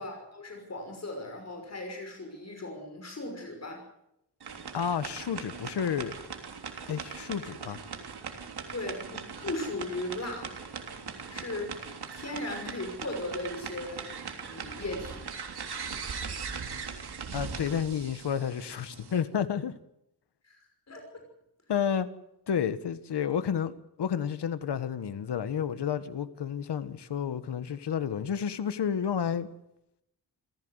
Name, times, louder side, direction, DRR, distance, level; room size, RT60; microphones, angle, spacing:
voice 1, 0.0-3.9 8.7-10.5 11.3-14.1 14.4-15.2 20.4-21.2, left 2 dB, 40° left, 5.8 m, -37 dB
sound 1, 4.4-19.2, right 6 dB, 70° right, 3.4 m, -40 dB
voice 2, 4.7-6.2 6.9-7.8 17.3-19.7 21.7-22.1 22.5-23.7 24.0-29.5, left 8 dB, 85° left, 1.6 m, -30 dB
27.5 x 15.5 x 8.1 m
wide cardioid pair, 130°, 40 cm